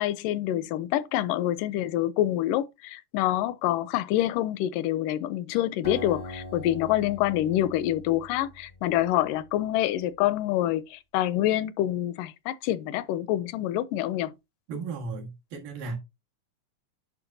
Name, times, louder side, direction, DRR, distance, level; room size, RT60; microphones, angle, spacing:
voice 1, 0.0-14.3, left 13 dB, 80° left, 2.1 m, -26 dB
Acoustic guitar, 5.8-9.4, left 2 dB, 50° left, 0.5 m, -42 dB
voice 2, 14.7-16.0, right 4 dB, 85° right, 3.4 m, -35 dB
11.0 x 4.6 x 2.7 m
omnidirectional pair, 3.8 m